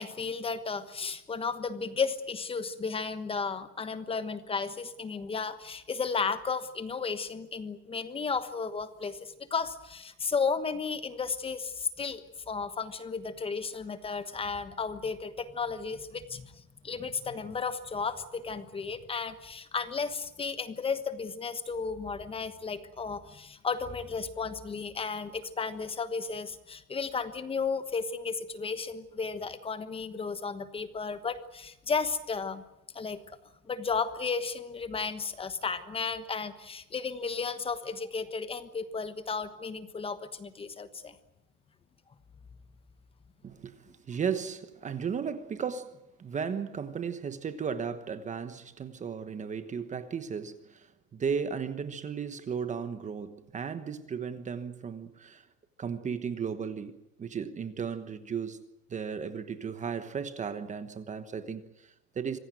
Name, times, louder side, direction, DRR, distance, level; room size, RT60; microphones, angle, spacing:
voice 1, 0.0-16.6 16.8-32.6 32.9-33.2 33.7-41.1, left 5 dB, 10° left, 1.2 m, -34 dB
voice 2, 43.4-55.5 55.8-62.4, right 6 dB, 15° right, 1.2 m, -35 dB
26.0 x 17.5 x 9.2 m
supercardioid pair, 150°, 46 cm